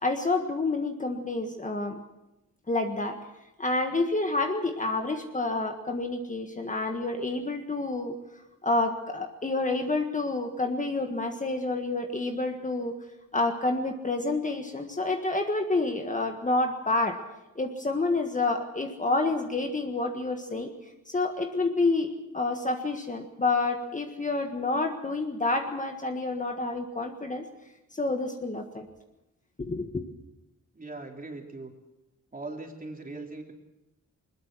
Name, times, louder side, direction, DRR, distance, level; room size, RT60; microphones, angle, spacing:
voice 1, 0.0-2.0 2.7-3.1 3.6-8.1 8.6-12.9 13.3-17.2 17.5-20.7 21.1-27.4 27.9-28.9 29.6-30.0, left 2 dB, 25° left, 4 dB, 1.6 m, -28 dB
voice 2, 30.7-31.7 32.3-33.5, right 2 dB, 25° right, 2 dB, 3.3 m, -40 dB
21.0 x 21.0 x 6.2 m, 0.95 s
wide cardioid pair, 120°, 33 cm